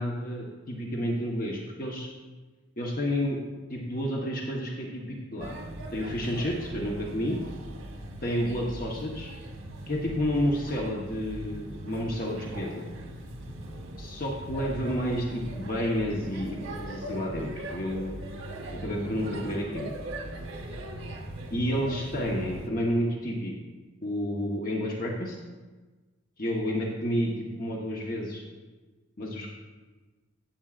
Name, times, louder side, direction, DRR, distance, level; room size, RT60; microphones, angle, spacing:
voice 1, 0.0-2.1 2.8-3.4 3.7-5.6 5.9-7.4 8.2-9.3 9.9-12.9 14.0-18.2 18.8-19.9 21.5-23.5 24.0-25.4 26.4-28.4 29.2-29.5, equal, 45° left, -2 dB, 1.1 m, -30 dB
Male speech man speaking / Child speech kid speaking / Chatter, 5.4-22.7, right 1 dB, 80° right, 1.2 m, -40 dB
14.5 x 8.1 x 2.5 m, 1.3 s
head